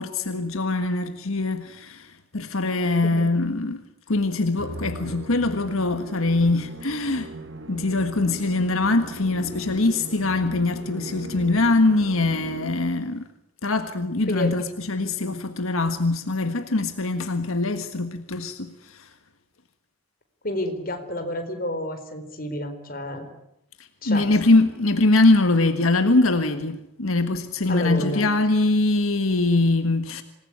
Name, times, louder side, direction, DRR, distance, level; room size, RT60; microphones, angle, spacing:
voice 1, 0.0-3.8 4.1-7.3 7.7-13.2 13.6-19.1 23.8-30.2, left 2 dB, 80° left, 1.6 m, -23 dB
Musical instrument, 4.6-13.1, right 1 dB, 60° right, 1.6 m, -39 dB
voice 2, 20.4-23.2 24.0-24.3 27.7-28.2, left 1 dB, 40° left, 4.3 m, -29 dB
26.5 x 20.0 x 9.9 m
head